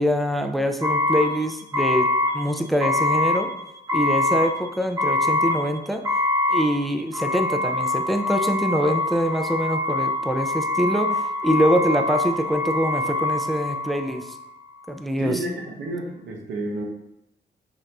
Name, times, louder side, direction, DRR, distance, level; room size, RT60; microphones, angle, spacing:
voice 1, 0.0-2.1 2.3-3.5 3.9-6.0 6.5-14.2 14.9-15.4, equal, ahead, 6 dB, 0.5 m, -24 dB
sound 1, 0.8-14.4, left 2 dB, 20° right, 1.4 m, -24 dB
voice 2, 15.2-16.8, right 2 dB, 85° right, 0 dB, 0.9 m, -30 dB
6.1 x 2.9 x 2.6 m, 0.87 s
cardioid pair, 60°, 18 cm